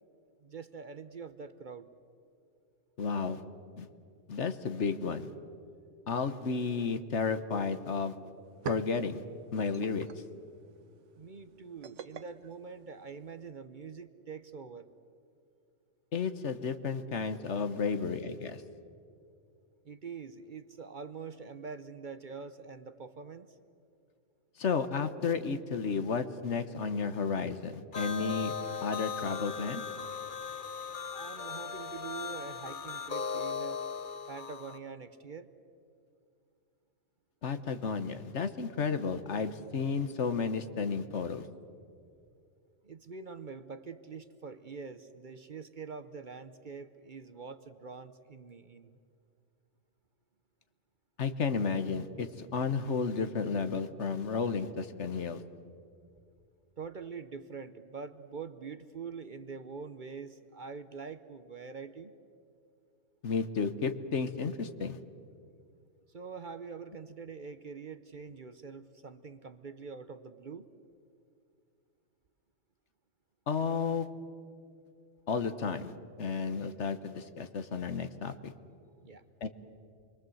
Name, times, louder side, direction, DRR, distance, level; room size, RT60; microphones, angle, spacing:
voice 1, 0.4-1.9 11.2-14.9 19.8-23.6 31.1-33.8 34.3-35.5 42.8-49.0 56.8-62.1 66.1-70.7 79.0-79.3, right 5 dB, 45° right, 11 dB, 0.9 m, -44 dB
voice 2, 3.0-3.4 3.8-3.9 4.3-5.3 6.1-8.2 8.6-9.2 9.5-10.1 16.1-18.6 24.6-28.6 28.8-29.8 37.4-41.5 51.2-55.4 63.2-65.0 73.5-74.1 75.3-75.9 76.2-78.5 79.4-79.5, left 5 dB, 65° left, 10 dB, 1.4 m, -32 dB
sound 1, 8.3-13.5, right 7 dB, 75° right, 1.1 m, -47 dB
sound 2, 27.9-34.8, left 6 dB, 45° left, 1.1 m, -38 dB
28.0 x 22.5 x 7.8 m, 2.4 s
omnidirectional pair, 1.3 m